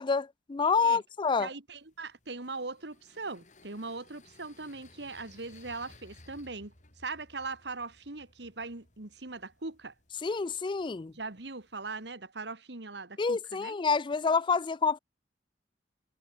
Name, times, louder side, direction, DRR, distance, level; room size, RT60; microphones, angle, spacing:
voice 1, 0.0-1.5 10.2-11.1 13.2-15.0, left 5 dB, 25° left, 0.4 m, -28 dB
voice 2, 1.4-9.9 11.1-13.8, right 3 dB, 75° right, 2.2 m, -40 dB
sound 1, 1.7-12.2, left 2 dB, 45° left, 7.8 m, -60 dB
head